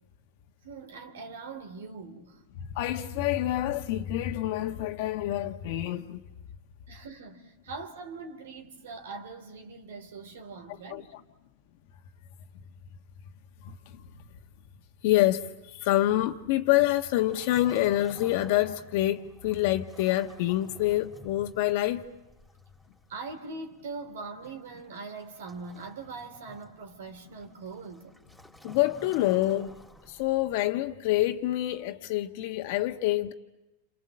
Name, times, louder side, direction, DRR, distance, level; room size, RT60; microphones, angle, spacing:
voice 1, 0.6-2.4 6.9-11.1 23.1-28.1, right 4 dB, 80° right, 3.4 m, -42 dB
voice 2, 2.5-6.3 10.9-11.2 13.6-14.1 15.0-22.1 28.6-29.8 30.1-33.3, left 15 dB, 60° left, 1.3 m, -27 dB
Waves surf, 16.9-30.6, equal, 5° right, 3.2 m, -54 dB
28.0 x 27.0 x 7.7 m
hypercardioid pair, 125°, 0 cm